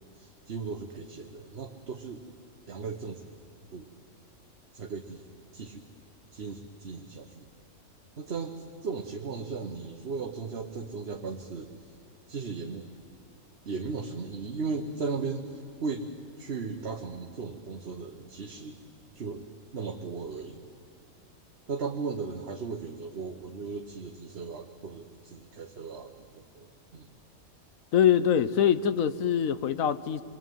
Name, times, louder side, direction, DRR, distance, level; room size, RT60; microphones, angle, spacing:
voice 1, 0.2-2.2 2.7-3.3 3.7-3.9 4.7-5.3 5.5-5.9 6.3-7.5 8.2-12.0 12.3-12.9 13.6-16.1 16.4-18.8 19.1-19.4 19.7-20.6 21.7-27.1, right 4 dB, 45° right, 3 dB, 1.3 m, -36 dB
voice 2, 27.9-30.2, left 9 dB, 65° left, 14 dB, 1.2 m, -24 dB
27.5 x 22.0 x 9.3 m, 2.5 s
omnidirectional pair, 1.6 m